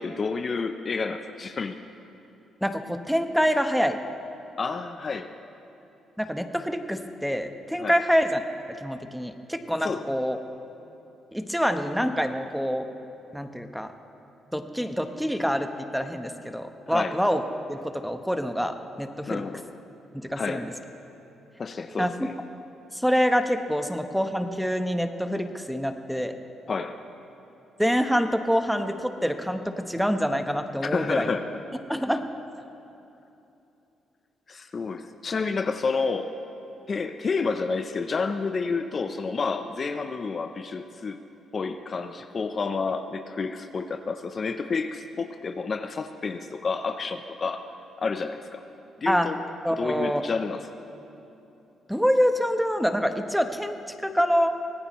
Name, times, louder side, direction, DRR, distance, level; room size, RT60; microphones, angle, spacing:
voice 1, 0.0-1.8 4.6-5.3 7.8-8.0 9.8-10.0 16.9-17.2 19.3-19.7 20.4-20.7 21.6-22.3 26.7-27.0 30.8-31.5 34.5-36.4 36.9-41.2 41.5-47.7 48.0-48.6 49.0-49.4 49.8-50.7, left 4 dB, 40° left, 8 dB, 0.7 m, -30 dB
voice 2, 2.6-4.0 6.2-8.4 8.8-10.4 11.3-12.9 13.3-13.9 14.5-17.4 17.7-19.4 20.1-20.7 22.0-22.1 22.9-26.3 27.8-31.3 31.9-32.2 49.1-49.3 49.6-50.2 51.9-53.8 54.0-54.6, equal, ahead, 6 dB, 1.0 m, -26 dB
24.5 x 17.5 x 3.1 m, 2.8 s
cardioid pair, 90°, 0 cm